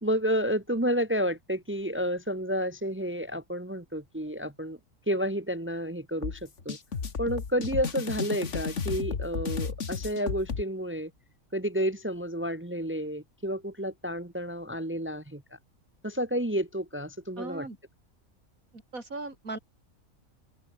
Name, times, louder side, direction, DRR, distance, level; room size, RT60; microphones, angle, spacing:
voice 1, 0.0-4.8 5.1-6.8 7.2-11.1 11.5-15.6 16.0-17.7, equal, 10° right, 1.3 m, -30 dB
sound 1, 6.2-10.6, left 5 dB, 60° left, 2.0 m, -33 dB
voice 2, 17.4-17.8 18.7-19.6, right 2 dB, 85° right, 5.0 m, -38 dB
open air
omnidirectional pair, 1.4 m